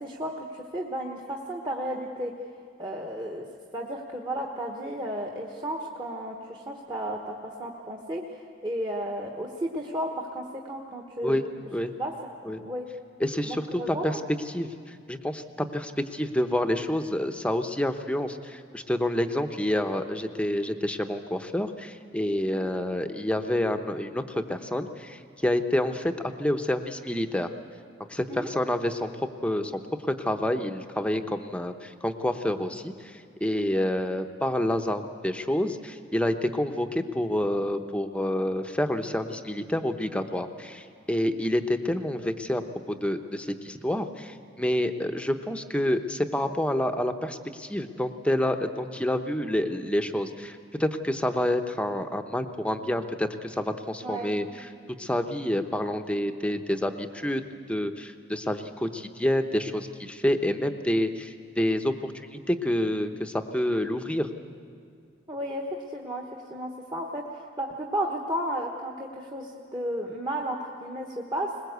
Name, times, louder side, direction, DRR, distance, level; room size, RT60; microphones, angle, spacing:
voice 1, 0.0-2.3 2.8-3.4 3.7-11.4 12.0-12.9 13.4-14.2 22.5-22.7 28.3-28.5 54.0-54.3 65.3-65.6 65.9-66.2 66.5-71.5, right 1 dB, 25° right, 0 dB, 1.3 m, -33 dB
voice 2, 13.2-14.2 14.5-27.5 28.1-29.1 29.4-54.7 55.0-57.4 57.7-64.3, left 1 dB, 5° left, 7 dB, 0.8 m, -28 dB
21.5 x 20.5 x 8.1 m, 2.2 s
head